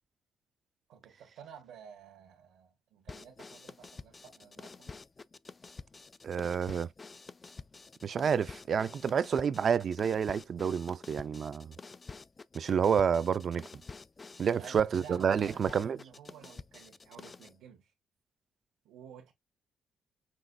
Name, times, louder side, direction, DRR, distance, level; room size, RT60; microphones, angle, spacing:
voice 1, 0.9-4.9 14.4-17.9 18.8-19.3, right 8 dB, 90° right, 1.4 m, -52 dB
sound 1, 3.1-17.6, left 4 dB, 30° left, 0.3 m, -49 dB
voice 2, 6.2-6.9 8.0-11.7 12.5-13.6 14.4-16.0, right 7 dB, 50° right, 0.4 m, -29 dB
6.1 x 3.0 x 2.5 m
cardioid pair, 90°, 0 cm